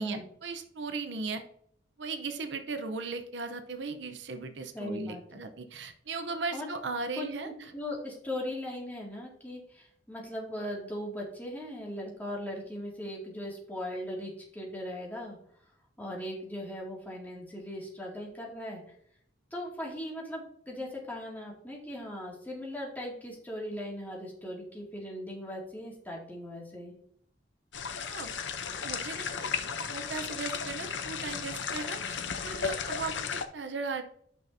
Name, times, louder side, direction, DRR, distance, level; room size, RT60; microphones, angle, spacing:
voice 1, 0.0-1.4 2.0-7.7 28.1-28.3 28.7-34.0, right 4 dB, 75° right, 8 dB, 0.7 m, -37 dB
voice 2, 4.7-5.2 6.5-6.7 7.2-15.4 16.0-18.8 19.5-26.9, left 1 dB, 10° left, -3 dB, 2.2 m, -39 dB
sound 1, 27.7-33.4, left 6 dB, 90° left, 0.7 m, -35 dB
9.2 x 5.8 x 2.7 m, 0.67 s
head